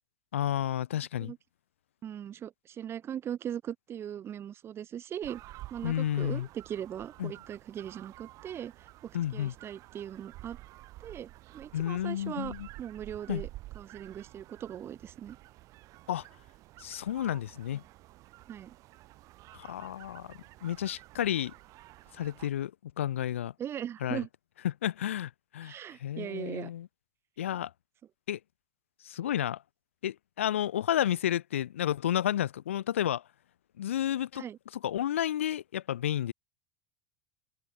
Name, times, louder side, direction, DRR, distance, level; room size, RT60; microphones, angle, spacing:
voice 1, 0.3-1.3 5.8-6.5 7.2-7.3 9.1-9.5 11.7-12.7 13.3-13.5 16.1-16.2 16.8-17.8 19.5-21.5 22.1-23.5 24.0-24.2 24.6-26.9 27.4-27.7 28.3-28.4 29.0-29.6 30.0-33.2 33.8-34.4 34.7-36.3, left 11 dB, 85° left, 1.6 m, -31 dB
voice 2, 2.0-5.4 5.7-10.6 11.0-12.5 12.8-13.5 13.7-15.4 18.5-18.7 23.6-24.3 25.6-26.7 34.3-34.6, right 9 dB, 35° right, 2.9 m, -39 dB
sound 1, 5.2-22.5, right 18 dB, 55° right, 2.8 m, -51 dB
open air
hypercardioid pair, 90°, 7 cm